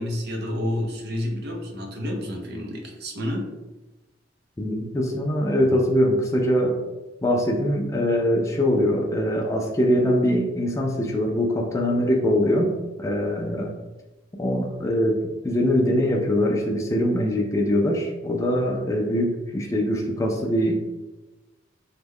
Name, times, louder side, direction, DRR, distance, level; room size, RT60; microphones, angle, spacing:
voice 1, 0.0-3.5, left 1 dB, 55° right, 1 dB, 0.6 m, -29 dB
voice 2, 4.6-6.8 7.2-12.7 13.0-13.7 14.3-15.2 15.4-20.9, equal, 15° left, 0 dB, 0.3 m, -22 dB
3.1 x 2.1 x 3.5 m, 1.1 s
head